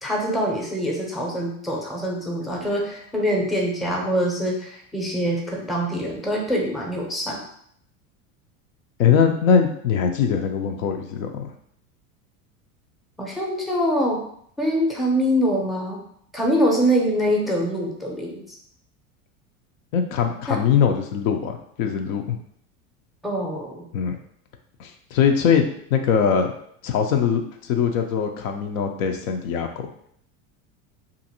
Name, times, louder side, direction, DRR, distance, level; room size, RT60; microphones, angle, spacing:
voice 1, 0.0-7.4 13.2-14.2 14.6-16.0 16.3-18.4 20.5-20.6 23.2-23.8, equal, ahead, -1 dB, 0.6 m, -24 dB
voice 2, 9.0-11.5 19.9-22.4 23.9-24.1 24.8-26.5 26.8-29.9, left 7 dB, 75° left, 5 dB, 0.5 m, -22 dB
2.5 x 2.5 x 2.8 m, 0.67 s
hypercardioid pair, 95°, 41 cm